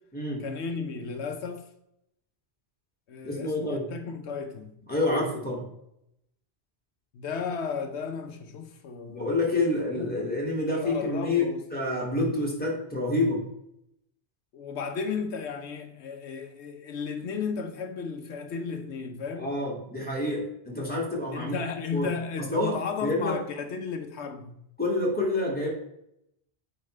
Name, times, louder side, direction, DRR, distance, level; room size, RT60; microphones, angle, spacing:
voice 1, 0.4-1.6 3.1-4.8 7.1-9.4 9.7-10.3 10.8-11.6 14.5-19.5 21.3-24.5, left 5 dB, 80° left, 1.0 m, -34 dB
voice 2, 3.2-3.9 4.9-5.6 9.1-13.4 19.4-21.6 21.9-22.1 22.5-23.4 24.8-25.7, left 2 dB, 10° left, 2.1 m, -28 dB
8.5 x 4.9 x 3.2 m
omnidirectional pair, 1.1 m